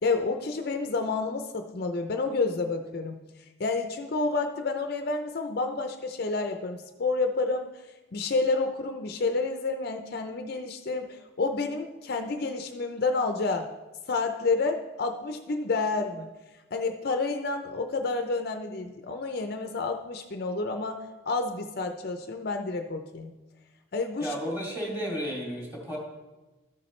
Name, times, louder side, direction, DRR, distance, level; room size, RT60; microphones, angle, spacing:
voice 1, 0.0-3.2 3.6-7.7 8.1-13.7 14.1-16.3 16.7-23.3 23.9-24.3, left 3 dB, 50° left, 6 dB, 0.5 m, -29 dB
voice 2, 24.2-26.0, equal, 10° right, -4 dB, 2.3 m, -33 dB
13.0 x 7.1 x 3.2 m, 1.1 s
head